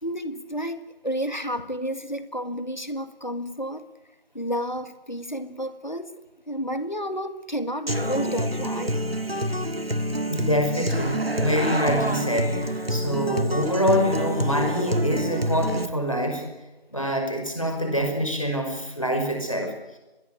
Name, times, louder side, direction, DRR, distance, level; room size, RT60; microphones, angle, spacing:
voice 1, 0.0-3.9 4.3-6.1 6.5-9.0, equal, 50° left, 11 dB, 1.8 m, -31 dB
Human voice / Acoustic guitar, 7.9-15.9, equal, 75° right, 2.1 m, -27 dB
voice 2, 10.3-16.4 16.9-20.0, equal, 35° left, 5 dB, 5.4 m, -25 dB
24.5 x 21.5 x 9.5 m, 1.0 s
figure-of-eight pair, 180°, 30 cm